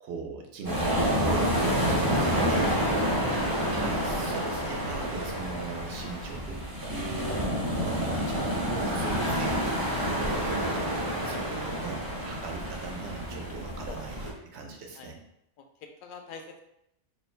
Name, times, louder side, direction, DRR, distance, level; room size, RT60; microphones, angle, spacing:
voice 1, 0.0-1.6 2.4-2.7 3.7-6.6 6.9-10.0 10.3-10.9 11.2-15.2, right 4 dB, 60° right, 2 dB, 0.9 m, -39 dB
sound 1, 0.6-14.3, equal, 20° right, 0.7 m, -28 dB
voice 2, 2.0-2.8 3.3-3.6 13.6-14.0 15.0-15.1 15.6-16.6, left 5 dB, 65° left, 4 dB, 0.5 m, -45 dB
3.1 x 2.6 x 4.3 m, 0.79 s
omnidirectional pair, 1.4 m